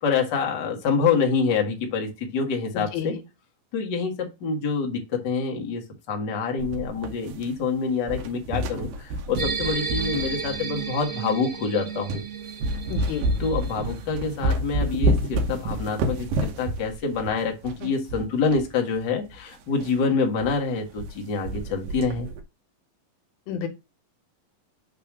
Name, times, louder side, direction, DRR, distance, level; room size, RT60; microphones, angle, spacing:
voice 1, 0.0-3.2 3.7-5.8 6.1-12.2 13.4-22.3, left 5 dB, 45° left, 2 dB, 1.5 m, -26 dB
voice 2, 2.7-3.2 12.9-13.2 23.5-23.7, left 8 dB, 85° left, 8 dB, 2.8 m, -30 dB
sound 1, 6.6-7.7 8.0-11.0 11.6-11.7 12.1-12.3 12.6-18.7 18.9-19.0 19.3-19.4 19.8-20.0 20.4-20.5 20.8-21.2 21.5-22.4, right 1 dB, 75° right, 2.6 m, -29 dB
sound 2, 9.4-14.1, right 6 dB, 55° right, 1.4 m, -33 dB
6.9 x 3.4 x 6.0 m, 0.25 s
omnidirectional pair, 4.1 m